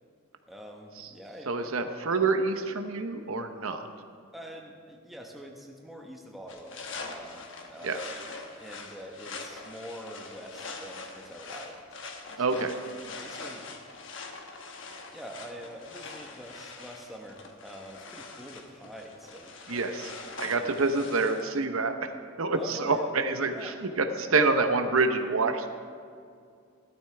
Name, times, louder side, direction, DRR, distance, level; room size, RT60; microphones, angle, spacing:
voice 1, 0.5-1.7 4.3-8.2 8.6-11.8 12.1-12.7 13.1-13.7 14.6-14.8 15.1-19.9 20.4-20.8 22.6-23.1 23.5-23.7, equal, ahead, 0 dB, 1.0 m, -45 dB
voice 2, 1.5-3.9 7.8-8.0 12.4-12.7 19.7-22.1 22.4-25.7, right 3 dB, 85° right, 7 dB, 0.8 m, -27 dB
sound 1, 6.5-21.6, left 3 dB, 65° left, 1.1 m, -43 dB
15.0 x 12.5 x 3.4 m, 2.3 s
head